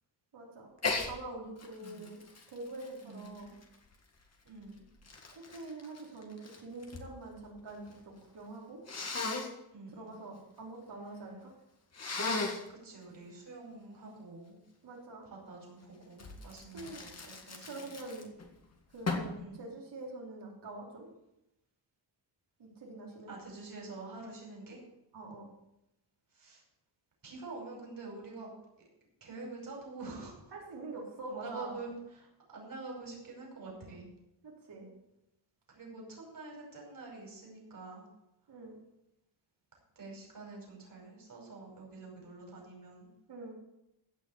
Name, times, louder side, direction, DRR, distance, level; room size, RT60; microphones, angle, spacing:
voice 1, 0.3-0.7 1.1-2.2 2.5-3.6 5.3-8.8 9.9-11.5 14.8-15.3 16.7-17.0 17.6-18.3 18.9-21.1 22.6-23.3 25.1-25.5 30.5-31.7 34.4-34.9 38.5-38.7 43.3-43.5, right 2 dB, 60° right, -2 dB, 4.4 m, -45 dB
Sneeze, 0.8-1.1 1.6-3.9 4.6-7.1 7.4-8.0 8.9-9.5 11.9-12.7 16.2-18.5 19.1-19.4, left 3 dB, 35° left, 1.9 m, -37 dB
voice 2, 1.8-2.2 3.0-3.4 4.4-4.9 9.7-10.1 12.7-14.6 15.2-17.9 19.4-19.7 23.3-24.8 26.3-26.6 27.2-28.5 29.2-30.5 31.3-34.1 35.7-38.1 40.0-43.1, right 3 dB, 45° right, -1 dB, 5.4 m, -47 dB
16.0 x 5.7 x 8.1 m, 0.87 s
wide cardioid pair, 145°, 46 cm